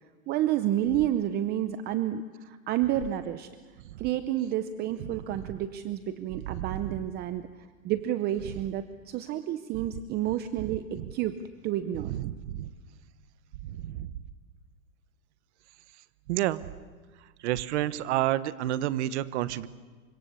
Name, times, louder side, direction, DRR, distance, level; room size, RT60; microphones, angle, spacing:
voice 1, 0.3-3.5 4.0-7.5 7.8-11.4 11.6-12.1, right 12 dB, 25° right, 11 dB, 0.7 m, -30 dB
voice 2, 12.1-12.7 13.7-14.1 16.3-16.7 17.4-19.7, right 14 dB, 50° right, 14 dB, 1.3 m, -29 dB
29.0 x 25.0 x 7.1 m, 1.4 s
hypercardioid pair, 145°, 42 cm